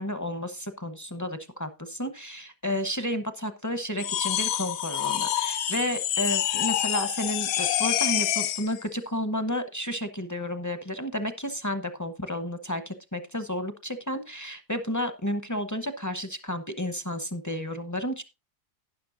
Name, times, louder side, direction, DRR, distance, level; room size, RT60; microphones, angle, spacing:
voice 1, 0.0-18.2, equal, 20° left, 9 dB, 0.4 m, -32 dB
sound 1, 4.0-8.7, left 11 dB, 65° left, 1.0 m, -27 dB
12.0 x 10.0 x 2.6 m, 0.26 s
omnidirectional pair, 1.7 m